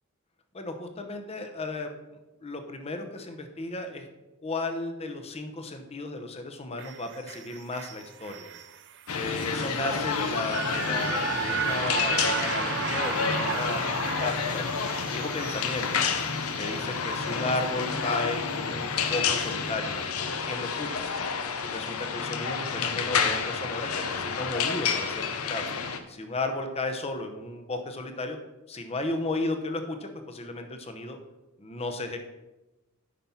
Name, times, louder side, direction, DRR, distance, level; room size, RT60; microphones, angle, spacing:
voice 1, 0.5-1.9 2.4-4.1 4.4-8.5 9.1-14.7 15.1-15.9 16.6-20.0 20.5-21.1 21.6-25.7 26.1-28.4 28.7-31.2 31.6-32.2, left 2 dB, 30° left, 6 dB, 0.8 m, -34 dB
sound 1, 6.8-19.1 19.5-19.6, right 8 dB, 55° right, 0.5 m, -36 dB
newjersey OC jillysairhockey, 9.1-26.0, left 5 dB, 80° left, 0.7 m, -29 dB
9.2 x 5.8 x 4.3 m, 1.0 s
head